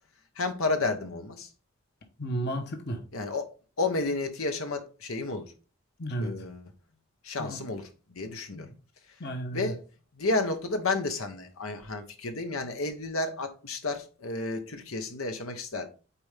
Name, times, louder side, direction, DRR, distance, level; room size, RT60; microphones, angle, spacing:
voice 1, 0.4-1.5 3.1-3.4 3.8-5.5 6.2-6.7 7.2-8.7 9.5-9.8 10.2-15.9, left 3 dB, 85° left, 1.2 m, -31 dB
voice 2, 2.2-3.0 6.0-6.4 7.4-7.6 8.5-8.7 9.2-9.7, right 1 dB, 55° left, 1.1 m, -33 dB
8.7 x 4.3 x 3.6 m
head